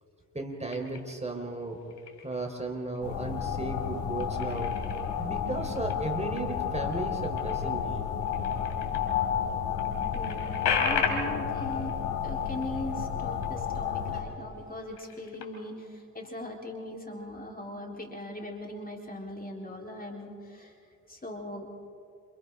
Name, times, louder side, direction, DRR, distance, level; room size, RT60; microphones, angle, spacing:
voice 1, 0.3-1.9 2.2-4.7 5.2-8.0 14.1-14.2, right 2 dB, 15° right, 3 dB, 4.0 m, -35 dB
sound 1, 0.7-1.3 1.8-2.5 2.9-3.6 3.9-9.1 9.5-9.6 9.8-13.8 14.1-14.3 14.8-15.8, left 6 dB, 65° left, 3.5 m, -36 dB
sound 2, 3.0-14.2, left 8 dB, 80° left, 3.0 m, -31 dB
voice 2, 10.1-11.9 12.2-20.7 21.1-21.7, left 1 dB, 20° left, 0 dB, 4.0 m, -40 dB
28.5 x 27.5 x 3.8 m, 2.3 s
hypercardioid pair, 45°, 43 cm